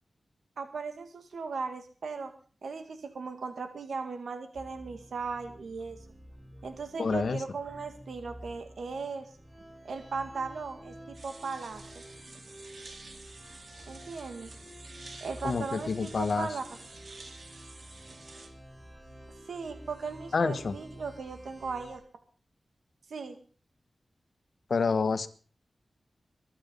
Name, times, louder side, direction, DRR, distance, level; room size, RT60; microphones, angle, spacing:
voice 1, 0.6-2.3 2.6-6.0 6.6-9.3 9.8-11.8 13.9-14.5 15.2-16.6 19.5-22.0 23.1-23.4, right 4 dB, 90° right, 7 dB, 2.0 m, -37 dB
sound 1, 4.5-22.0, equal, 5° right, 5.8 m, -50 dB
voice 2, 7.0-7.4 15.4-16.5 20.3-20.7 24.7-25.3, left 4 dB, 70° left, 12 dB, 1.3 m, -28 dB
sound 2, 11.1-18.5, right 3 dB, 60° right, 3.4 m, -50 dB
23.0 x 9.1 x 5.4 m, 0.39 s
wide cardioid pair, 80°, 0 cm